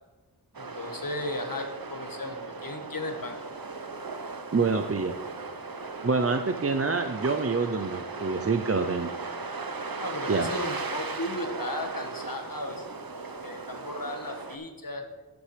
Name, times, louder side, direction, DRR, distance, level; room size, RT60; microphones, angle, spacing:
sound 1, 0.5-14.6, right 4 dB, 65° right, 0.9 m, -37 dB
voice 1, 0.6-3.4 10.0-12.9 13.4-15.1, left 1 dB, 60° left, 4 dB, 1.5 m, -35 dB
voice 2, 4.5-5.1 6.0-9.1 10.3-10.5, right 4 dB, 40° right, 7 dB, 0.6 m, -26 dB
11.5 x 9.4 x 3.3 m, 1.2 s
wide cardioid pair, 45°, 38 cm